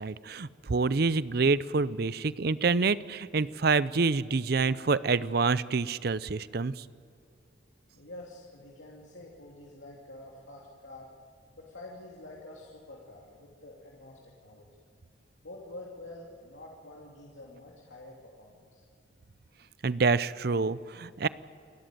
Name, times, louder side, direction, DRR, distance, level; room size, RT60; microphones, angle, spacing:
voice 1, 0.0-6.8 19.8-21.3, right 4 dB, 50° right, 17 dB, 0.5 m, -27 dB
voice 2, 7.9-11.1 11.6-14.7 15.4-18.8, left 2 dB, 75° left, -3 dB, 2.7 m, -47 dB
28.5 x 13.0 x 9.1 m, 2.5 s
head